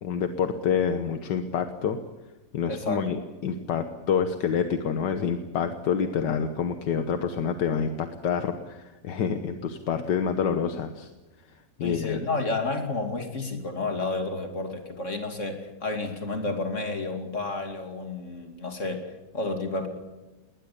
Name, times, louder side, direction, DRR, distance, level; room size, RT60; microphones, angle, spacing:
voice 1, 0.0-2.0 2.5-11.1 11.8-12.2, left 7 dB, 80° left, 8 dB, 1.8 m, -27 dB
voice 2, 2.7-3.1 11.8-19.9, left 3 dB, 45° left, 5 dB, 3.0 m, -31 dB
20.5 x 20.0 x 8.6 m, 1.1 s
omnidirectional pair, 1.8 m